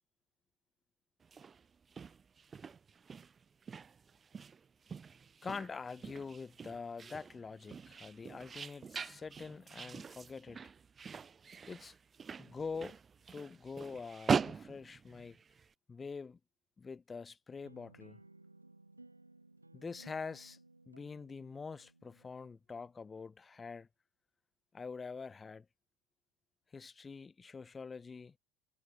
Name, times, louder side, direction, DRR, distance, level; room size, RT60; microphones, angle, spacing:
sound 1, 1.2-15.7, right 6 dB, 25° right, 2.6 m, -42 dB
voice 1, 5.4-10.7 11.7-11.9 12.4-13.0 13.3-15.4 15.9-16.4 16.8-18.2 19.7-20.6 20.9-23.9 24.7-25.6 26.7-28.3, left 5 dB, 20° left, 1.4 m, -45 dB
sound 2, 17.5-22.6, right 2 dB, 85° right, 5.1 m, -60 dB
figure-of-eight pair, 65°, 0 cm